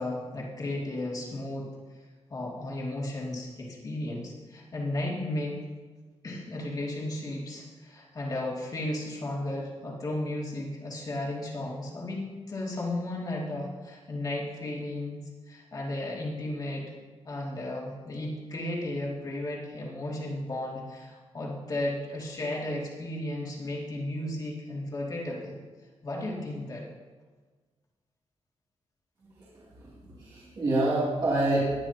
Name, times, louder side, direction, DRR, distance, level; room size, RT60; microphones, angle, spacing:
voice 1, 0.0-1.7 2.3-5.6 6.2-15.2 15.5-16.9 17.2-25.5 26.0-26.8, left 1 dB, 35° left, -3 dB, 2.6 m, -34 dB
voice 2, 29.3-31.7, right 2 dB, 40° right, -9 dB, 3.1 m, -28 dB
18.5 x 10.0 x 3.0 m, 1.4 s
wide cardioid pair, 170°, 11 cm